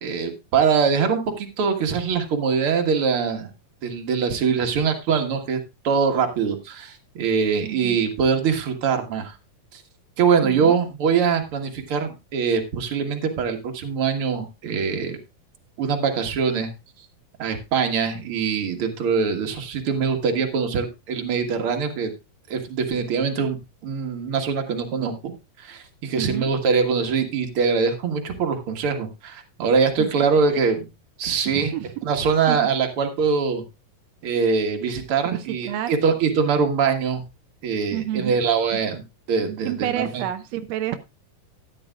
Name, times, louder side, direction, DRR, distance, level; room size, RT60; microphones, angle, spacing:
voice 1, 0.0-3.5 3.8-5.6 5.8-9.4 9.7-9.8 10.2-15.2 15.8-16.7 17.4-22.1 22.5-23.6 23.8-25.3 25.6-30.9 31.2-31.7 32.0-33.6 34.2-37.2 37.6-39.0 39.3-40.2, right 6 dB, 50° right, 4 dB, 2.0 m, -23 dB
voice 2, 7.6-8.0 10.4-10.8 26.2-26.5 30.0-30.1 31.5-31.9 32.5-32.7 35.3-35.9 37.9-38.4 38.7-38.8 39.6-41.0, right 11 dB, 85° right, 9 dB, 1.5 m, -29 dB
14.0 x 10.0 x 2.4 m, 0.24 s
omnidirectional pair, 3.9 m